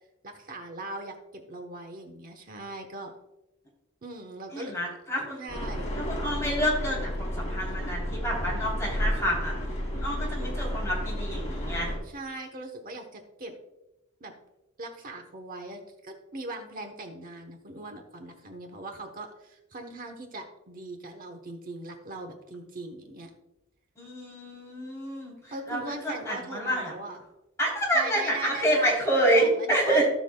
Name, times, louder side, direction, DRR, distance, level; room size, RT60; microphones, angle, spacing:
voice 1, 0.2-3.1 4.0-4.8 5.4-5.9 12.0-13.6 14.2-14.3 14.8-23.3 25.5-27.2 27.9-28.9 29.4-30.1, right 2 dB, 40° right, 4 dB, 1.1 m, -40 dB
voice 2, 4.5-5.4 6.0-12.0 24.0-26.9 27.6-30.1, right 1 dB, 15° left, -4 dB, 3.4 m, -28 dB
sound 1, 5.5-12.0, equal, 35° left, 2.6 m, -31 dB
16.0 x 6.2 x 2.3 m, 0.95 s
head